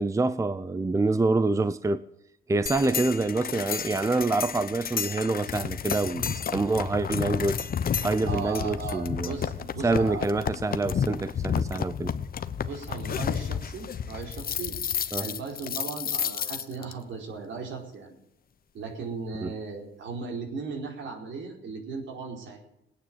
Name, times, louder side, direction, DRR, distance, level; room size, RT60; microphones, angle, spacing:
voice 1, 0.0-2.0 2.5-7.7 8.0-9.4 9.8-12.1 15.1-15.3 19.4-19.5, right 3 dB, 15° right, 0.6 m, -26 dB
sound 1, 2.7-16.9, left 7 dB, 50° left, 1.0 m, -31 dB
voice 2, 8.3-10.2 12.6-14.8 15.2-18.1 18.7-22.6, right 4 dB, 70° right, 4.6 m, -37 dB
18.5 x 9.4 x 7.8 m
cardioid pair, 90°, 20 cm